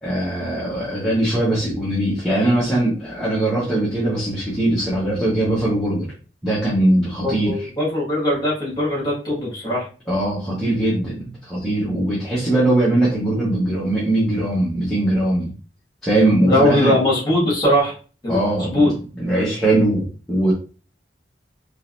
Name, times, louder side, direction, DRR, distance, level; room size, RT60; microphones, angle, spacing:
voice 1, 0.0-6.1 6.4-7.7 10.1-15.5 16.0-16.9 18.3-18.9 19.2-20.5, right 1 dB, ahead, -9 dB, 1.1 m, -20 dB
voice 2, 7.2-9.9 16.5-17.9 18.2-18.9, left 1 dB, 20° left, -5 dB, 1.8 m, -20 dB
3.9 x 3.0 x 2.6 m, 0.38 s
head